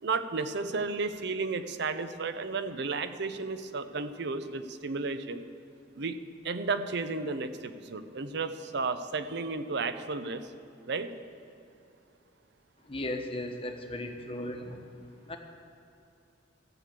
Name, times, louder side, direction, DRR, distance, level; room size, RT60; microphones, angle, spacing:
voice 1, 0.0-5.4 6.0-6.2 6.4-10.5 10.9-11.1, right 4 dB, 65° right, 10 dB, 0.7 m, -33 dB
voice 2, 12.9-14.8 15.3-15.4, left 1 dB, 30° left, 4 dB, 1.1 m, -36 dB
13.5 x 6.7 x 8.1 m, 2.6 s
head